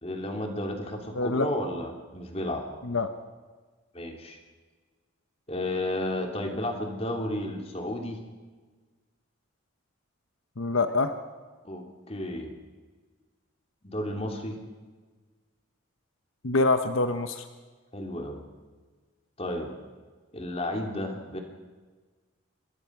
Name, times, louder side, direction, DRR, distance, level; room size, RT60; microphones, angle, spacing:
voice 1, 0.0-2.6 3.9-4.4 5.5-8.2 11.6-12.5 13.8-14.6 17.9-18.4 19.4-19.8 20.3-21.4, left 1 dB, 30° left, 3 dB, 2.9 m, -32 dB
voice 2, 1.2-1.5 2.9-3.1 10.6-11.1 16.4-17.4, left 3 dB, 75° left, 8 dB, 1.1 m, -25 dB
27.5 x 21.0 x 6.1 m, 1.4 s
head